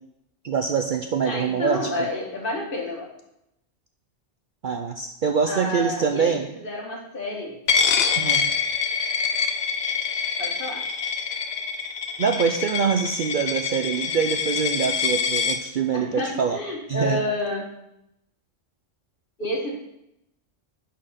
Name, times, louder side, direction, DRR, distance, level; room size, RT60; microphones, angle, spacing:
voice 1, 0.4-1.9 4.6-6.5 8.2-8.5 12.2-16.6 16.9-17.2, right 6 dB, 55° right, 5 dB, 0.6 m, -24 dB
voice 2, 1.2-3.1 5.5-7.6 10.4-10.9 15.9-17.8 19.4-19.8, left 1 dB, 45° left, 1 dB, 1.6 m, -30 dB
Coin (dropping), 7.7-15.6, left 6 dB, 60° left, 0.9 m, -25 dB
10.0 x 4.2 x 5.6 m, 0.84 s
omnidirectional pair, 1.3 m